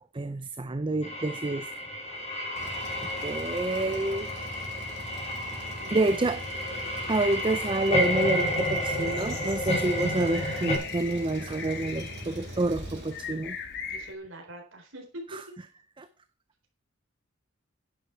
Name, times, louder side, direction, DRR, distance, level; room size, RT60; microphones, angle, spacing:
voice 1, 0.1-1.7 2.1-2.2 3.2-4.3 5.9-6.4 7.1-13.6 15.3-15.4 16.0-16.1, right 2 dB, 25° right, 12 dB, 0.5 m, -28 dB
sound 1, 1.0-10.8, left 1 dB, 30° left, 5.7 m, -31 dB
Truck, 2.5-13.7, equal, 55° right, 4.7 m, -42 dB
voice 2, 5.7-6.3 13.9-15.1, right 2 dB, 70° right, 2 dB, 3.8 m, -44 dB
sound 2, 9.1-14.1, left 6 dB, 55° left, 1.6 m, -41 dB
11.0 x 9.8 x 4.6 m, 0.38 s
head